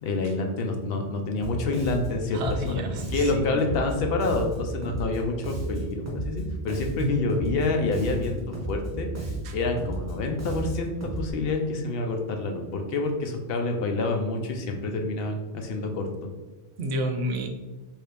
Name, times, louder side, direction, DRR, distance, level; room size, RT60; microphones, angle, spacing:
voice 1, 0.0-2.8 3.1-9.1 9.5-16.1, left 3 dB, 70° left, 3 dB, 0.7 m, -28 dB
Bass guitar, 1.4-11.3, right 1 dB, 20° right, 0.6 m, -34 dB
voice 2, 2.3-3.5 7.0-7.3 9.4-9.5 16.8-17.5, equal, 85° right, 5 dB, 0.8 m, -29 dB
3.0 x 2.7 x 3.3 m, 1.2 s
omnidirectional pair, 1.1 m